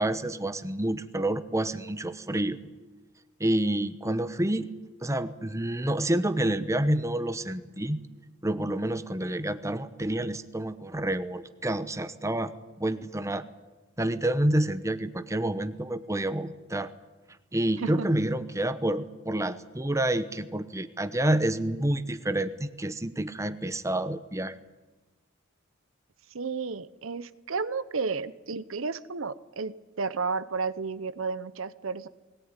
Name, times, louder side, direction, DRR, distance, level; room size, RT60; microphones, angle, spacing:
voice 1, 0.0-2.6 3.4-4.7 5.0-8.0 8.4-12.5 12.8-13.4 14.0-16.9 17.5-24.5, right 1 dB, 15° right, 11 dB, 1.0 m, -28 dB
voice 2, 26.3-32.1, right 4 dB, 70° right, 16 dB, 0.8 m, -32 dB
20.5 x 18.5 x 9.7 m, 1.2 s
head